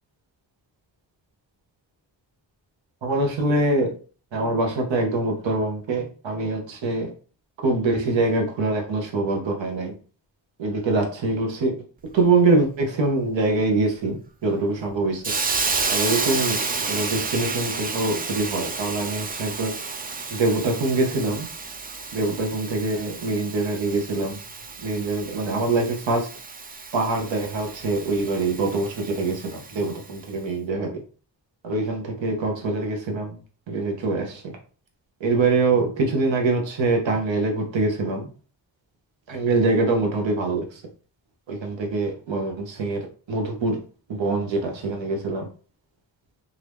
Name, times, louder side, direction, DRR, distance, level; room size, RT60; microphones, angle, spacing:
voice 1, 3.0-3.9 4.3-7.1 7.6-9.9 10.6-11.8 12.1-15.4 15.9-16.6 16.9-19.7 20.3-21.5 22.1-24.4 24.8-26.3 26.9-31.0 31.6-33.4 33.7-34.5 35.2-38.3 39.3-40.8 41.5-43.8 44.1-45.5, right 3 dB, 70° right, 2 dB, 1.0 m, -24 dB
Hiss, 15.2-30.0, right 4 dB, 20° right, 0.3 m, -31 dB
2.8 x 2.5 x 3.4 m, 0.39 s
cardioid pair, 55°, 46 cm